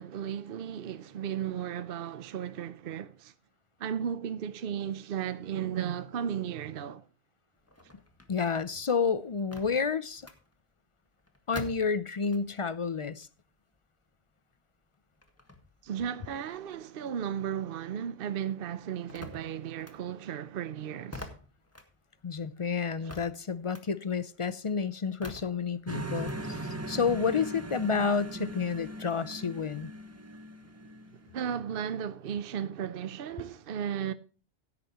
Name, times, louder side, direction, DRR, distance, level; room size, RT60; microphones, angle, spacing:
voice 1, 0.0-3.3 3.8-7.0 15.8-21.3 31.3-34.1, right 9 dB, 60° right, 0.8 m, -35 dB
sound 1, 7.6-12.7 13.0-17.9 18.2-26.4, left 2 dB, 15° left, 1.5 m, -49 dB
voice 2, 8.3-10.2 11.5-13.3 22.2-29.9, left 5 dB, 40° left, 0.5 m, -30 dB
sound 2, 25.9-31.5, right 1 dB, 15° right, 0.7 m, -39 dB
16.0 x 8.9 x 3.0 m
omnidirectional pair, 1.1 m